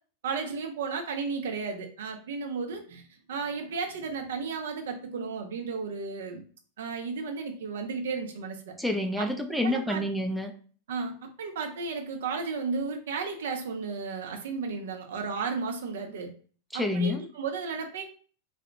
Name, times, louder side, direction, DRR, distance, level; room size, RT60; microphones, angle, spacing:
voice 1, 0.2-3.0 3.3-6.4 6.8-8.7 9.2-9.3 9.6-10.0 10.9-16.3 16.7-18.0, right 5 dB, 60° right, 4 dB, 0.5 m, -33 dB
voice 2, 8.8-10.5 16.7-17.2, left 1 dB, ahead, 4 dB, 0.3 m, -28 dB
2.7 x 2.0 x 3.4 m, 0.43 s
figure-of-eight pair, 90°, 0 cm